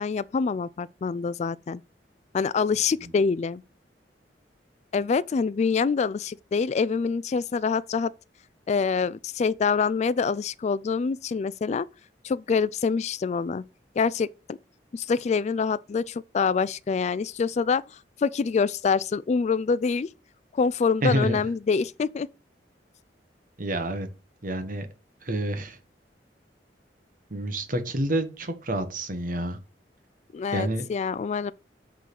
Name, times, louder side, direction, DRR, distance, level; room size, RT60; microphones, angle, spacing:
voice 1, 0.0-1.8 2.3-3.6 4.9-8.1 8.7-11.9 12.2-13.6 14.0-14.6 14.9-17.8 18.2-20.1 20.5-22.3 30.3-31.5, left 5 dB, 40° left, 0.3 m, -25 dB
voice 2, 21.0-21.4 23.6-24.1 24.4-24.9 25.2-25.8 27.3-29.6 30.5-30.9, right 1 dB, 50° right, 1.3 m, -28 dB
8.3 x 3.8 x 6.0 m
head